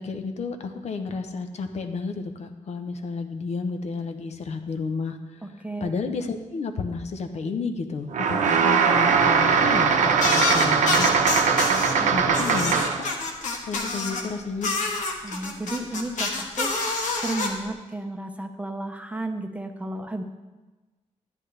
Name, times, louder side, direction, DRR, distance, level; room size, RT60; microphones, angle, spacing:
voice 1, 0.0-11.3 12.1-12.7 13.6-14.7, left 4 dB, 60° left, 7 dB, 0.9 m, -31 dB
voice 2, 5.6-5.9 11.7-12.1 15.2-20.2, right 2 dB, 10° right, 5 dB, 0.7 m, -33 dB
sound 1, 8.1-13.1, right 6 dB, 80° right, 0.9 m, -21 dB
sound 2, 10.2-11.9 12.3-14.2 14.6-17.5, left 3 dB, 80° left, 1.3 m, -27 dB
11.5 x 10.0 x 3.4 m, 1.2 s
wide cardioid pair, 125°, 13 cm